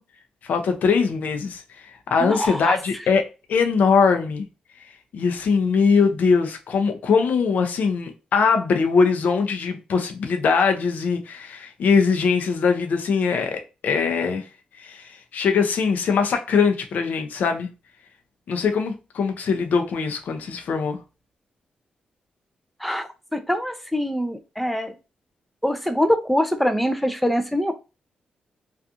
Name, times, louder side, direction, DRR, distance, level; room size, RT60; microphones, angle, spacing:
voice 1, 0.4-1.6 2.1-3.2 3.5-4.5 5.1-14.4 14.8-17.7 18.5-21.0, left 5 dB, 70° left, 0.5 m, -21 dB
voice 2, 2.2-2.7 22.8-24.9 25.6-27.7, equal, ahead, 0.4 m, -24 dB
2.4 x 2.3 x 2.6 m
cardioid pair, 95°, 3 cm